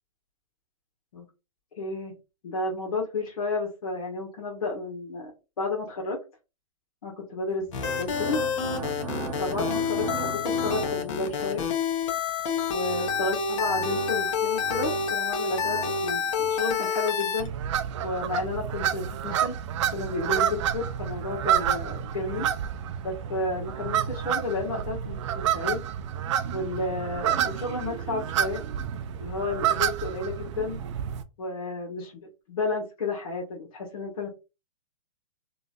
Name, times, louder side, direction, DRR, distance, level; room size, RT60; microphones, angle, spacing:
voice 1, 1.7-2.2 2.4-5.3 5.6-6.2 7.0-7.7 8.0-8.4 9.4-11.6 12.7-16.2 16.5-17.5 18.0-19.6 19.9-22.5 23.0-25.8 26.5-28.6 29.2-30.8 31.4-34.3, left 3 dB, 75° left, -3 dB, 1.3 m, -31 dB
sound 1, 7.6-11.6 12.6-16.6, right 5 dB, 20° right, 0.7 m, -37 dB
sound 2, 7.7-17.5, left 6 dB, 55° left, 1.0 m, -28 dB
sound 3, 17.4-31.2, right 10 dB, 50° right, 0.5 m, -29 dB
3.9 x 2.6 x 2.4 m, 0.29 s
hypercardioid pair, 125°, 19 cm